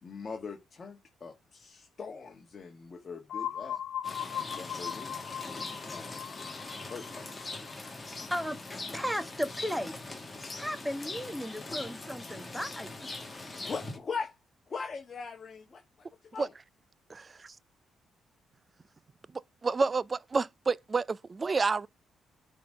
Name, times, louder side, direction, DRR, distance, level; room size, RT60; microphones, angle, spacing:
voice 1, 0.0-3.8 4.5-5.4 5.9-6.5 6.9-7.7 13.6-14.3 14.7-16.5, left 5 dB, 40° left, 1.6 m, -41 dB
sound 1, 3.3-9.0, left 10 dB, 70° left, 0.7 m, -39 dB
Rain, 4.0-14.0, left 2 dB, 25° left, 2.1 m, -41 dB
voice 2, 8.9-9.9 10.6-13.1, equal, ahead, 1.5 m, -35 dB
voice 3, 17.1-17.5 19.6-21.9, right 4 dB, 35° right, 0.4 m, -29 dB
10.0 x 4.0 x 6.3 m
cardioid pair, 85°, 0 cm